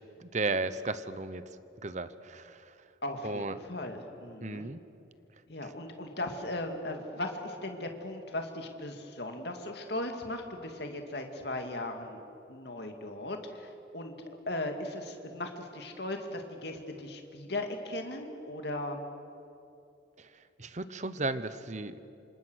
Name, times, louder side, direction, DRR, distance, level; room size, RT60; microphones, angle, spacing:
voice 1, 0.2-1.4 1.8-2.9 3.2-3.6 4.4-4.8 5.6-5.7 20.2-22.0, right 3 dB, 40° right, 13 dB, 0.9 m, -35 dB
voice 2, 3.0-4.7 5.5-12.2 12.5-19.0, left 1 dB, 60° left, 4 dB, 2.4 m, -38 dB
28.0 x 26.0 x 6.4 m, 2.7 s
head